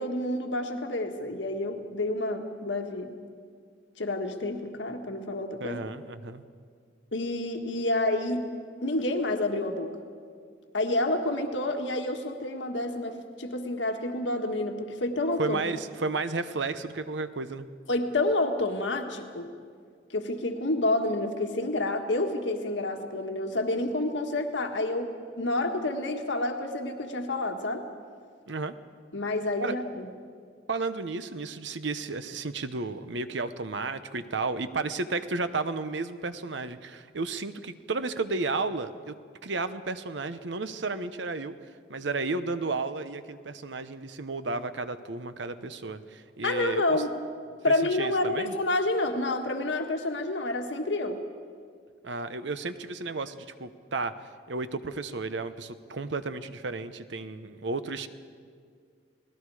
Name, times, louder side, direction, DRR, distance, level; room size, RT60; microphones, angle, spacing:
voice 1, 0.0-3.2 4.0-5.8 7.1-8.4 8.8-9.9 10.7-15.6 17.9-19.5 20.1-27.8 29.1-30.1 46.4-47.1 47.6-51.2, left 2 dB, 80° left, 4 dB, 1.7 m, -29 dB
voice 2, 5.6-6.4 15.4-17.7 28.5-28.7 29.6-29.7 30.7-39.2 39.4-41.5 41.9-47.0 48.0-48.5 52.0-54.1 54.5-58.1, right 3 dB, 75° right, 11 dB, 0.9 m, -33 dB
29.5 x 19.0 x 4.9 m, 2.1 s
head